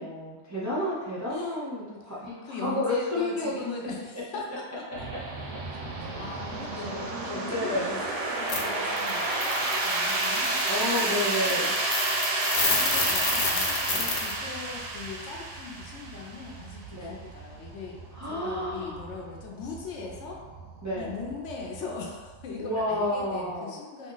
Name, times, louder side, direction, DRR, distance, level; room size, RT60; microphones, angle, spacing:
voice 1, 0.0-3.6 6.0-6.2 7.5-8.0 10.7-11.7 14.0-14.1 16.9-17.2 18.1-19.0 20.8-21.1 22.6-23.8, left 1 dB, 20° right, -9 dB, 0.4 m, -30 dB
voice 2, 1.3-2.0 2.4-5.1 6.0-10.6 10.9-11.7 12.6-20.4 21.0-24.1, left 4 dB, 75° left, -1 dB, 0.9 m, -40 dB
sound 1, 4.9-23.5, right 2 dB, 75° right, 0.9 m, -31 dB
sound 2, 8.5-8.6 8.9-14.3, left 3 dB, 60° left, 0.5 m, -30 dB
2.8 x 2.1 x 3.7 m, 1.3 s
omnidirectional pair, 1.3 m